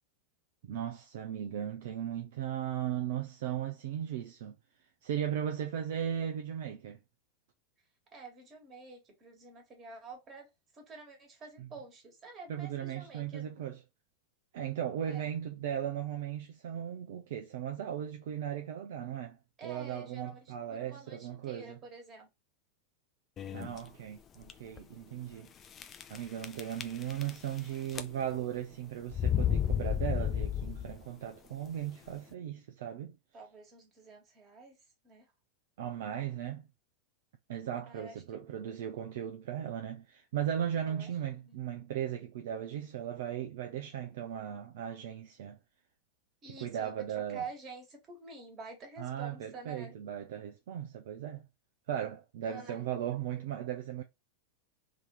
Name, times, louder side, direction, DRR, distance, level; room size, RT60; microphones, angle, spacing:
voice 1, 0.6-4.5 5.0-7.0 11.6-11.7 12.5-13.8 14.5-19.4 19.6-21.8 23.5-25.5 26.1-33.1 35.8-36.7 37.5-45.6 46.5-47.4 49.0-51.4 51.9-54.0, right 10 dB, 55° right, 0.5 m, -37 dB
voice 2, 8.1-10.5 10.7-13.5 15.0-15.3 19.6-22.3 33.3-34.8 35.0-35.3 37.8-38.6 40.9-41.6 43.8-43.9 46.4-49.9 52.4-52.8, right 4 dB, 25° right, 1.7 m, -48 dB
sound 1, 23.4-23.8 24.4-24.5 24.8-24.9 25.8-26.2 26.4-27.6 27.9-28.4 29.1-31.0, left 9 dB, 25° left, 0.5 m, -31 dB
3.7 x 2.8 x 3.1 m
figure-of-eight pair, 90°, 0 cm